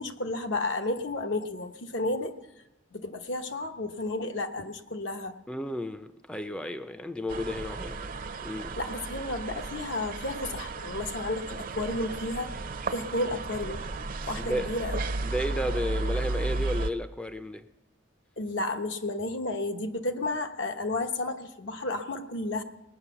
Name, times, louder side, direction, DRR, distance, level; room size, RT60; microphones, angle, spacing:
voice 1, 0.0-2.3 2.9-5.4 8.8-12.5 12.9-13.8 14.3-15.0 18.4-22.6, left 2 dB, 70° left, 1.0 m, -32 dB
voice 2, 5.5-8.1 8.4-8.8 14.4-14.7 15.2-17.7, equal, 5° left, 0.5 m, -33 dB
sound 1, 7.3-16.9, right 3 dB, 45° right, 0.7 m, -34 dB
19.0 x 9.2 x 7.0 m
head